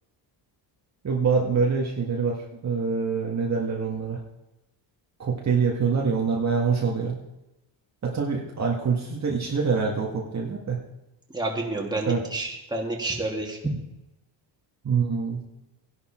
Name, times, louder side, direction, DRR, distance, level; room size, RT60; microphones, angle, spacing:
voice 1, 1.0-4.2 5.2-7.2 8.0-10.8 12.1-12.2 14.8-15.5, right 5 dB, 35° right, -2 dB, 1.9 m, -25 dB
voice 2, 11.3-13.7, right 2 dB, 10° right, -1 dB, 2.7 m, -29 dB
15.0 x 11.0 x 4.5 m, 0.97 s
cardioid pair, 110°, 47 cm